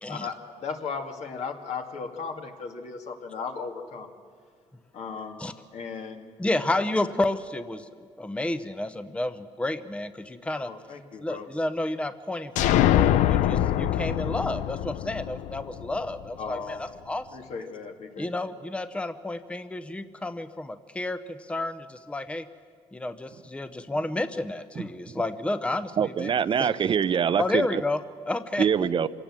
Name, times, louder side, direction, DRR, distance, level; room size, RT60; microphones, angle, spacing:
voice 1, 0.1-4.1 4.9-6.3 6.7-6.8 10.7-11.5 16.4-16.8 17.3-18.3, left 5 dB, 65° left, 3 dB, 2.3 m, -36 dB
voice 2, 6.4-7.9 8.2-10.7 11.2-17.3 18.2-22.5 22.9-26.3 26.6-26.7 27.4-28.0 28.3-28.7, left 2 dB, 10° left, 11 dB, 0.8 m, -31 dB
sound 1, 12.6-16.2, left 12 dB, 90° left, 0.6 m, -23 dB
voice 3, 24.8-25.2 26.0-27.8 28.6-29.1, right 7 dB, 45° right, 14 dB, 0.6 m, -25 dB
26.5 x 17.5 x 7.5 m, 2.1 s
cardioid pair, 105°, 12 cm